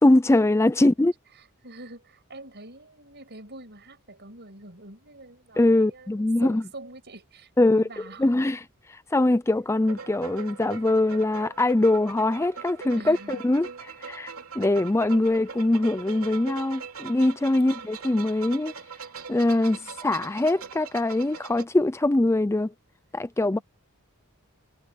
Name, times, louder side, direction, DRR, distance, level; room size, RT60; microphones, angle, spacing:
voice 1, 0.0-1.1 5.6-6.6 7.6-7.8 8.2-8.6 8.9-13.7 14.0-18.7 19.3-22.7 23.1-23.6, left 2 dB, 10° left, 0.4 m, -22 dB
voice 2, 0.8-1.1 1.4-8.4 12.9-13.4 17.6-17.9 19.4-19.9 23.5-23.6, right 2 dB, 50° right, 7.8 m, -45 dB
sound 1, 9.7-21.7, right 6 dB, 65° right, 3.5 m, -41 dB
head